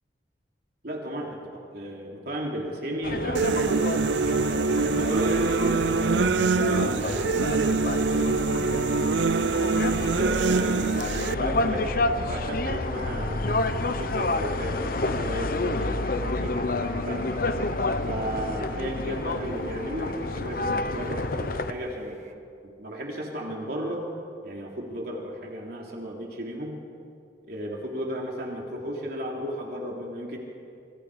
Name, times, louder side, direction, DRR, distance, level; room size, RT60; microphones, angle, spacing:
voice 1, 0.8-6.2 6.5-8.8 9.3-12.0 12.3-13.7 14.0-16.5 16.8-17.2 18.0-22.3 22.6-24.0 24.4-26.8 27.5-30.4, equal, 60° right, -1 dB, 3.3 m, -34 dB
sound 1, 3.0-21.7, left 2 dB, 55° left, 1.0 m, -29 dB
sound 2, 3.3-11.3, right 4 dB, 85° right, 0.5 m, -24 dB
sound 3, 3.5-22.3, right 2 dB, 40° right, 1.5 m, -47 dB
27.0 x 26.0 x 5.0 m, 2.5 s
head